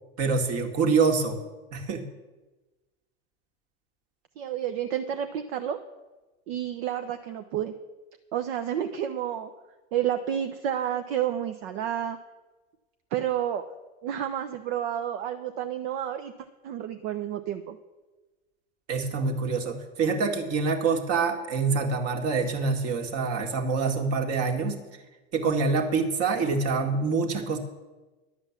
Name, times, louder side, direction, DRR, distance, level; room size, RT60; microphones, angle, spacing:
voice 1, 0.2-1.4 1.7-2.0 18.9-24.8 25.3-27.6, right 4 dB, 45° right, 4 dB, 2.1 m, -26 dB
voice 2, 4.4-5.8 6.5-7.7 8.3-9.5 9.9-12.2 13.1-13.6 14.0-16.3 16.6-17.8, right 10 dB, 65° right, 7 dB, 1.0 m, -30 dB
11.5 x 8.0 x 7.3 m, 1.2 s
hypercardioid pair, 105°, 33 cm